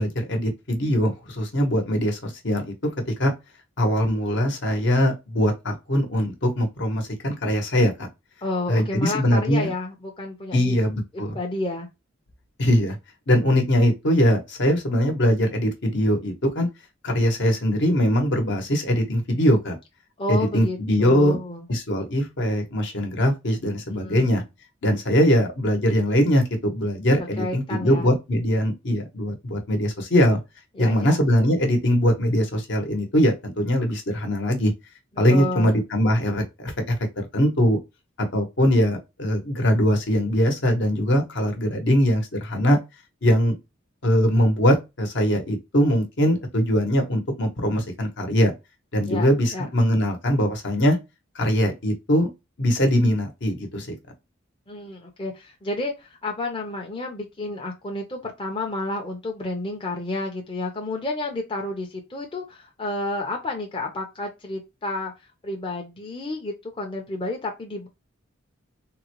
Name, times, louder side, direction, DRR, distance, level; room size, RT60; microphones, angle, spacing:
voice 1, 0.0-2.7 3.1-3.3 3.8-8.1 8.7-9.7 10.5-11.3 12.6-13.0 13.3-16.7 17.0-19.8 20.3-21.4 21.7-24.4 24.8-30.4 30.8-34.7 35.2-37.8 38.3-42.8 43.2-43.5 44.0-48.5 48.9-51.0 51.3-52.3 52.6-54.0, equal, 65° left, 1.0 m, -21 dB
voice 2, 8.4-10.8 11.1-11.9 20.2-21.7 23.9-24.3 27.2-28.1 30.7-31.2 35.3-35.8 49.0-49.3 49.5-49.7 54.7-65.1 65.4-67.9, left 2 dB, 25° left, 0.7 m, -31 dB
3.7 x 2.2 x 2.9 m
head